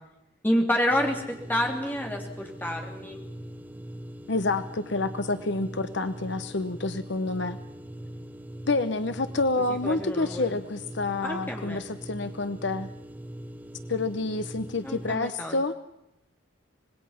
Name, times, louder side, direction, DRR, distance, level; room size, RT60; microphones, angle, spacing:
voice 1, 0.4-3.2 9.7-10.5 11.2-11.8 14.8-15.6, left 1 dB, 10° left, 1 dB, 3.1 m, -28 dB
sound 1, 0.9-15.2, right 1 dB, 10° right, 1.3 m, -41 dB
voice 2, 4.3-7.6 8.7-12.9 13.9-15.7, left 3 dB, 55° left, 10 dB, 0.9 m, -28 dB
26.0 x 20.0 x 5.8 m, 0.87 s
head